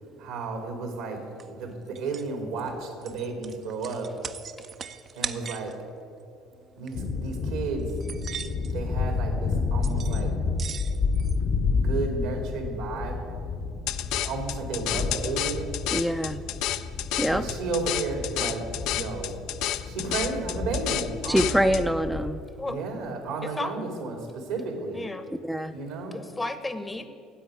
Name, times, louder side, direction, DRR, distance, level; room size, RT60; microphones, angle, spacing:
voice 1, 0.2-4.1 5.2-5.7 6.8-7.9 8.7-10.3 11.7-13.2 14.2-15.7 17.2-18.6 18.9-19.4 19.8-21.5 22.6-25.1 25.7-26.2, right 3 dB, 80° right, 4 dB, 2.5 m, -33 dB
sound 1, 1.4-1.5 1.9-2.3 2.7-5.7 6.8-6.9 7.3-7.4 7.9-8.7 9.8-10.2 10.5-11.4, right 7 dB, 45° right, 0.6 m, -38 dB
sound 2, 6.9-22.3, left 4 dB, 50° left, 0.9 m, -30 dB
sound 3, 13.9-21.8, left 13 dB, 70° left, 0.4 m, -31 dB
voice 2, 15.9-16.4 17.2-17.4 21.3-22.4 25.4-25.7, equal, 5° right, 6 dB, 0.5 m, -24 dB
voice 3, 23.4-23.7 24.9-25.3 26.1-27.1, left 2 dB, 15° left, 10 dB, 0.9 m, -33 dB
10.0 x 8.1 x 9.6 m, 2.5 s
hypercardioid pair, 70°, 0 cm